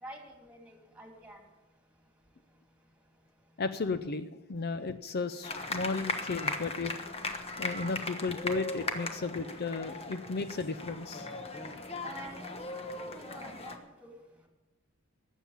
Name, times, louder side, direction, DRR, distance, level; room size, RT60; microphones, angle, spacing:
voice 1, 0.0-1.4 12.0-12.5 13.0-14.1, right 1 dB, 5° right, 2 dB, 2.6 m, -48 dB
voice 2, 3.6-7.0 7.6-11.3, left 4 dB, 50° left, 11 dB, 0.5 m, -34 dB
sound 1, 5.4-13.8, left 2 dB, 30° left, 1.2 m, -38 dB
19.0 x 7.4 x 7.1 m, 1.1 s
head